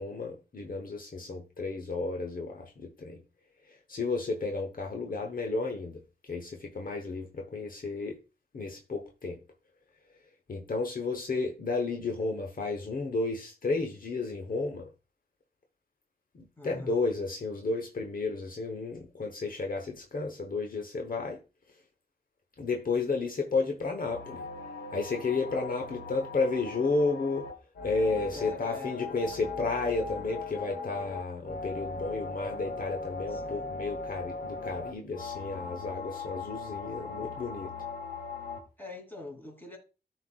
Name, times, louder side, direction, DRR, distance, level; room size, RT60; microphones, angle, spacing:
voice 1, 0.0-3.2 3.7-8.2 8.5-9.4 10.5-14.9 16.3-21.4 22.6-24.5 24.9-27.5 27.8-37.7, left 3 dB, 60° left, 1.0 m, -32 dB
voice 2, 16.6-17.0 28.3-28.9 33.3-33.7 38.8-39.8, left 2 dB, 10° left, 2.8 m, -44 dB
sound 1, 24.0-38.6, left 4 dB, 75° left, 1.5 m, -39 dB
13.5 x 4.6 x 2.4 m
cardioid pair, 65°, 17 cm